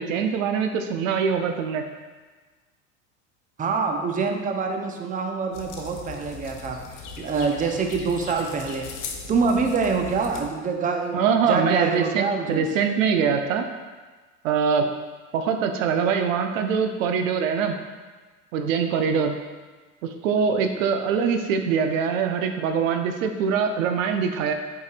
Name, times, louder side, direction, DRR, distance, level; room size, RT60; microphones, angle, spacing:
voice 1, 0.0-1.9 11.1-13.7 14.4-14.9 15.3-17.8 18.5-19.4 20.0-24.5, right 6 dB, 70° right, 6 dB, 0.6 m, -23 dB
voice 2, 3.6-6.8 7.2-8.9 9.3-12.7, right 4 dB, 20° right, 3 dB, 0.7 m, -25 dB
sound 1, 5.5-10.5, left 5 dB, 50° left, 1.0 m, -39 dB
8.0 x 4.8 x 2.4 m, 1.4 s
hypercardioid pair, 80°, 42 cm